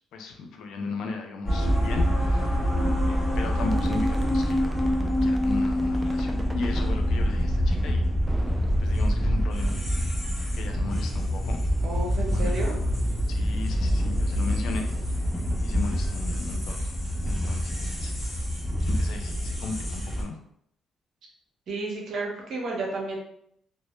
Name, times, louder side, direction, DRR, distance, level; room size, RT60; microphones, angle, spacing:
voice 1, 0.1-2.6 3.1-4.9 5.2-8.1 8.8-10.0 10.5-11.6 12.3-12.8 13.3-15.1 15.6-17.0 17.2-18.5 18.9-20.4, left 4 dB, 80° left, 4 dB, 0.4 m, -36 dB
sound 1, 1.5-20.2, equal, 25° left, 0.7 m, -26 dB
sound 2, 3.7-6.9 8.3-9.7, right 2 dB, 20° right, 0.3 m, -40 dB
voice 2, 11.8-12.8 21.7-23.2, right 2 dB, 65° right, -1 dB, 0.7 m, -32 dB
2.0 x 2.0 x 3.0 m, 0.70 s
cardioid pair, 90°, 0 cm